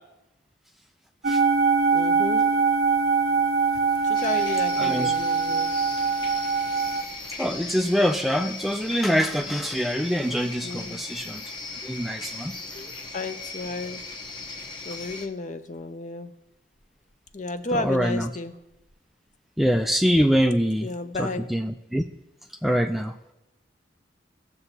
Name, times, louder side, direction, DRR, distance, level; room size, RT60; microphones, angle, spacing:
sound 1, 1.2-7.0, right 5 dB, 55° right, 0.6 m, -23 dB
voice 1, 1.9-2.4 4.0-5.7 10.6-11.0 12.7-14.0 14.8-16.3 17.3-18.5 20.8-21.4, left 2 dB, 40° left, 9 dB, 0.6 m, -32 dB
sound 2, 4.1-15.3, left 3 dB, 25° left, 0.9 m, -38 dB
voice 2, 4.8-5.1 7.4-11.4 11.8-12.5 17.8-18.3 19.6-20.9 21.2-22.0 22.6-23.1, equal, ahead, 5 dB, 0.3 m, -24 dB
17.5 x 6.9 x 2.8 m, 0.92 s
head